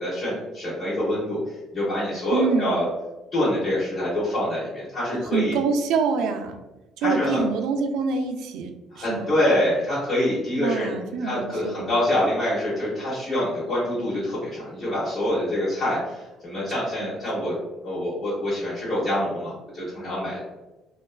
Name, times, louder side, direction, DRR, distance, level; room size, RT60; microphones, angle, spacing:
voice 1, 0.0-2.9 3.3-5.6 7.0-7.4 8.9-17.6 17.8-20.4, left 1 dB, 40° left, -10 dB, 1.1 m, -26 dB
voice 2, 2.3-2.7 5.1-6.6 7.0-9.3 10.6-11.8 17.0-17.1, right 5 dB, 85° right, 5 dB, 0.3 m, -26 dB
2.8 x 2.3 x 2.2 m, 1.1 s
cardioid pair, 130°, 0 cm